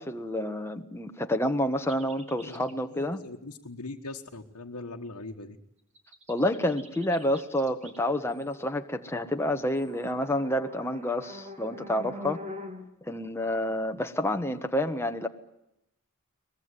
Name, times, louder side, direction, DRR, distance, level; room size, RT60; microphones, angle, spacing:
voice 1, 0.0-3.2 6.3-12.4 13.0-15.3, left 1 dB, 10° left, 5 dB, 1.3 m, -29 dB
sound 1, 1.9-2.8 6.0-12.9, left 1 dB, 30° right, 3.0 m, -45 dB
voice 2, 2.3-5.6, left 2 dB, 80° left, 0 dB, 1.5 m, -41 dB
23.0 x 20.5 x 9.7 m, 0.84 s
head